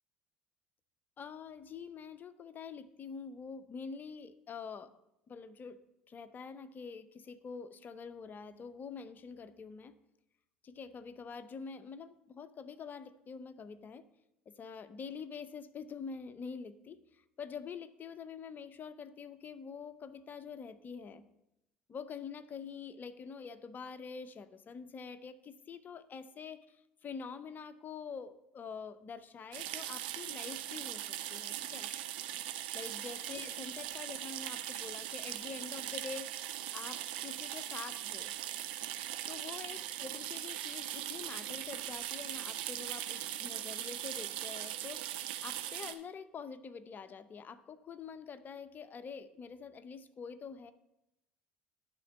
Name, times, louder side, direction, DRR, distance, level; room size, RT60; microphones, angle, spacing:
voice 1, 1.2-4.9 5.3-5.8 6.1-9.9 10.6-14.0 14.5-21.2 21.9-31.9 32.7-36.4 36.7-38.3 39.3-50.7, left 5 dB, 35° left, 12 dB, 0.7 m, -46 dB
sound 1, 29.5-45.9, right 12 dB, 70° right, 0.6 m, -40 dB
11.0 x 3.8 x 7.2 m, 0.88 s
hypercardioid pair, 65°, 5 cm